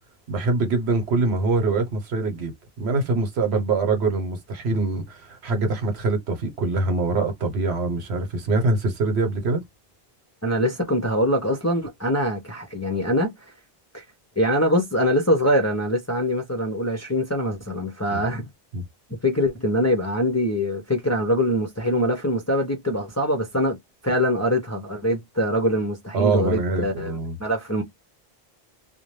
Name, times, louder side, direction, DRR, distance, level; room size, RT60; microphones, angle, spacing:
voice 1, 0.3-2.5 2.8-9.6 18.1-18.2 18.7-18.8 26.1-27.4, right 3 dB, 85° right, 1.2 m, -24 dB
voice 2, 10.4-13.3 13.9-14.0 14.4-18.5 19.1-23.8 24.0-27.8, equal, 20° left, 0.4 m, -23 dB
2.6 x 2.0 x 3.1 m
omnidirectional pair, 1.1 m